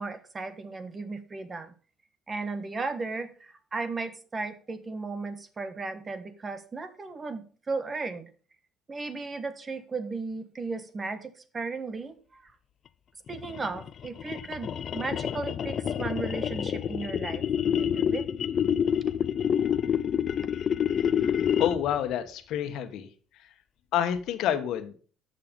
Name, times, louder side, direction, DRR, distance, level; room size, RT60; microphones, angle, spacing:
voice 1, 0.0-1.7 2.3-8.3 8.9-12.5 13.3-18.2, right 3 dB, 25° right, 11 dB, 1.5 m, -35 dB
sound 1, 13.3-22.0, left 8 dB, 50° left, 0.5 m, -28 dB
voice 2, 21.2-23.1 23.3-23.5 23.9-25.0, left 10 dB, 70° left, 9 dB, 1.4 m, -29 dB
12.5 x 6.8 x 5.4 m, 0.40 s
cardioid pair, 110°, 0 cm